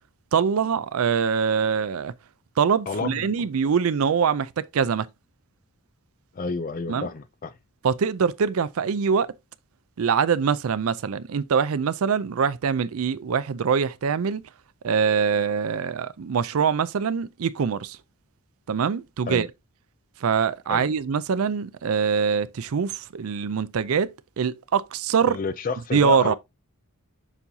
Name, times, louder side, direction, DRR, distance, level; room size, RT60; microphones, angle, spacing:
voice 1, 0.3-2.1 2.6-5.1 6.9-7.1 7.8-9.3 10.0-14.4 14.8-18.0 18.7-19.5 20.2-24.1 24.4-25.4 25.9-26.3, right 6 dB, 80° right, 0.4 m, -23 dB
voice 2, 2.9-3.5 6.3-7.5 19.3-19.5 20.7-20.9 25.3-26.3, left 4 dB, 40° left, 0.4 m, -30 dB
7.1 x 5.5 x 2.7 m
head